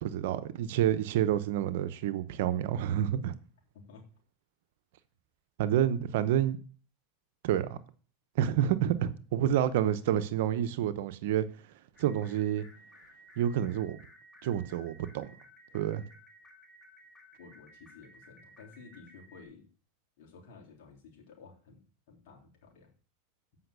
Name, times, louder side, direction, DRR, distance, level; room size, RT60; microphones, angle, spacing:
voice 1, 0.0-3.3 5.6-6.6 7.4-7.8 8.4-11.4 12.0-12.7 13.4-14.0 14.4-15.3 15.7-16.0, right 10 dB, 70° right, 0.8 m, -28 dB
sound 1, 12.0-19.4, equal, 20° left, 2.4 m, -57 dB
voice 2, 17.4-19.7 20.2-21.8 22.1-22.9, left 5 dB, 65° left, 3.4 m, -53 dB
7.9 x 5.7 x 6.6 m
hypercardioid pair, 100°, 0 cm